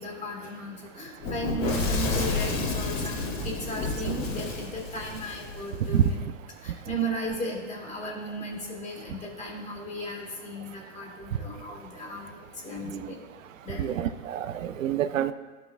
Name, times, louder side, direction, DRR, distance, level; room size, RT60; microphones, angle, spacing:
voice 1, 0.0-6.2 6.6-13.2 13.6-14.1, right 1 dB, 20° left, -1 dB, 2.0 m, -35 dB
Fire / Explosion, 1.2-6.1, left 3 dB, 55° left, 2.3 m, -30 dB
voice 2, 13.8-15.3, right 10 dB, 90° right, 11 dB, 0.6 m, -26 dB
13.0 x 5.8 x 2.3 m, 1.3 s
hypercardioid pair, 110°, 38 cm